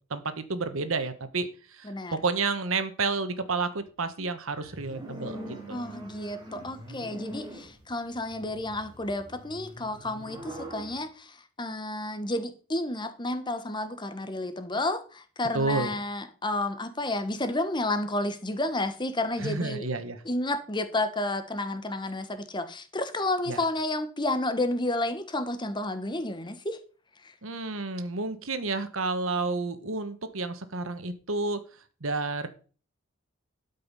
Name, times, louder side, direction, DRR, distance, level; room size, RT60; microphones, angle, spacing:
voice 1, 0.1-5.9 15.5-15.9 19.4-20.2 23.5-23.6 27.4-32.5, right 3 dB, 75° right, 1.3 m, -31 dB
voice 2, 1.8-2.1 5.7-19.9 20.2-26.8, left 2 dB, 20° left, 1.1 m, -31 dB
sound 1, 4.6-11.0, right 1 dB, 20° right, 2.9 m, -43 dB
12.5 x 5.4 x 5.4 m
head